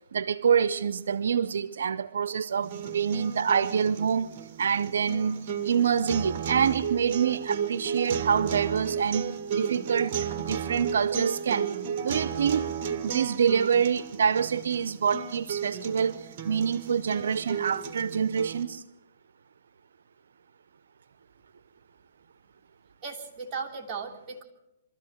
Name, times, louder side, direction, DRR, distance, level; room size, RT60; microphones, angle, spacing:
voice 1, 0.1-4.3 4.6-11.8 12.0-12.7 13.0-18.8, right 7 dB, 80° right, 0.7 m, -26 dB
sound 1, 2.6-18.6, right 7 dB, 40° right, 1.7 m, -34 dB
voice 2, 23.0-24.4, right 5 dB, 20° right, 3.3 m, -36 dB
24.5 x 13.5 x 7.9 m
hypercardioid pair, 150°, 0 cm